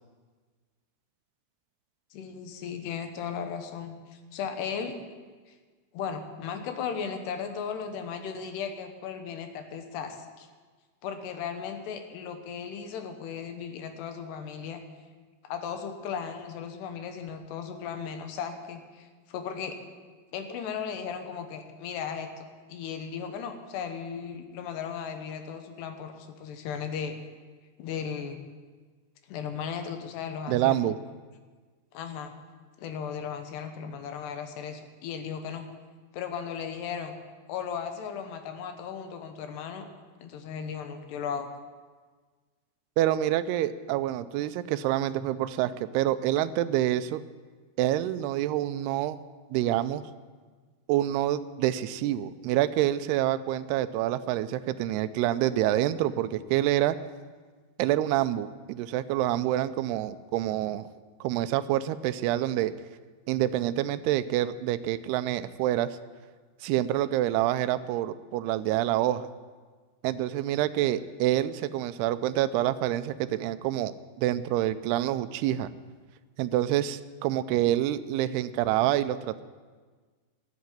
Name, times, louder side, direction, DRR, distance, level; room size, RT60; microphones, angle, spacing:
voice 1, 2.1-5.0 5.5-5.6 5.9-10.5 11.0-14.8 15.4-19.8 20.3-27.2 27.8-28.4 29.3-30.8 31.9-32.3 32.8-35.7 36.1-37.2 37.5-39.9 40.2-41.5, left 7 dB, 80° left, 6 dB, 3.2 m, -36 dB
voice 2, 30.5-31.0 43.0-47.2 47.8-49.2 49.5-50.0 50.9-57.0 57.8-60.9 61.2-62.7 63.3-65.9 66.6-69.3 70.0-75.7 76.4-79.4, right 13 dB, 80° right, 13 dB, 2.5 m, -27 dB
13.0 x 8.4 x 9.3 m, 1.5 s
omnidirectional pair, 4.8 m